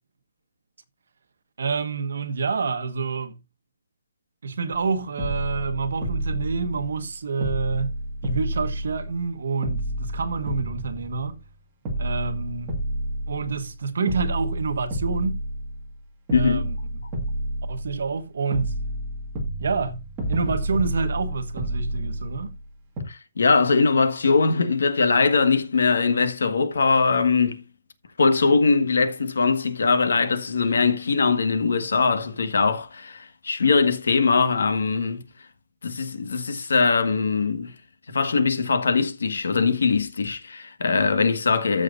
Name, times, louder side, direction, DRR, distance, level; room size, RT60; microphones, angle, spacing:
voice 1, 1.6-3.4 4.4-7.9 8.2-11.4 12.0-12.8 13.3-15.4 16.3-16.8 17.7-18.8 19.6-20.0 20.3-22.5, right 4 dB, 60° right, 1.4 m, -28 dB
sound 1, 4.7-4.9 5.2-7.1 7.4-9.3 9.6-11.5 11.8-13.8 14.1-16.0 16.3-18.2 18.5-22.6 23.0-23.1, right 1 dB, 15° right, 1.8 m, -30 dB
voice 2, 16.3-16.6 23.1-27.6 28.2-35.2 35.8-37.7 38.1-41.8, left 4 dB, 80° left, 1.6 m, -21 dB
14.5 x 6.5 x 2.6 m
hypercardioid pair, 180°, 0 cm